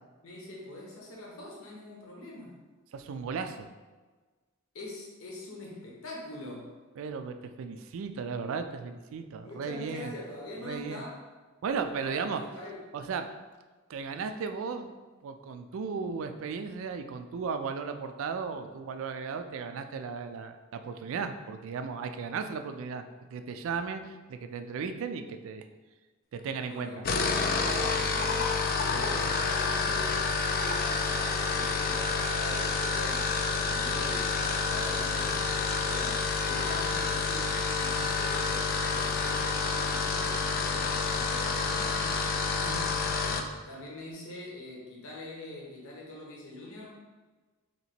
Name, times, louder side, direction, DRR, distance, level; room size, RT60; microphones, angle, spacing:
voice 1, 0.2-2.6 4.7-6.7 9.1-11.2 12.0-12.8 26.7-27.0 27.7-30.2 30.6-42.5 43.2-47.0, left 1 dB, 70° left, -3 dB, 0.8 m, -43 dB
voice 2, 2.9-3.7 7.0-10.1 10.6-11.0 11.6-12.4 12.9-13.3 13.9-15.0 15.2-23.0 23.3-25.7 26.3-27.0 38.0-38.2 42.6-42.9, right 5 dB, 65° right, 7 dB, 0.3 m, -35 dB
sound 1, 26.9-43.5, left 4 dB, 45° left, 0.3 m, -29 dB
3.0 x 2.9 x 4.2 m, 1.3 s
head